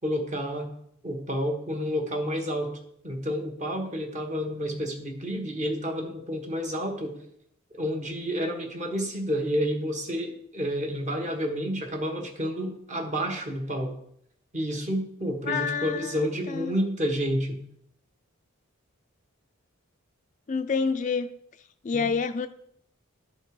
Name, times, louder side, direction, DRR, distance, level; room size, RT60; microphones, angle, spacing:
voice 1, 0.0-0.7 1.0-2.8 3.0-7.2 7.7-14.0 14.5-17.6 21.9-22.1, equal, 35° right, 2 dB, 1.3 m, -30 dB
voice 2, 15.5-16.7 20.5-21.3 21.8-22.5, left 5 dB, 35° left, 10 dB, 0.3 m, -28 dB
12.0 x 4.4 x 4.8 m, 0.71 s
head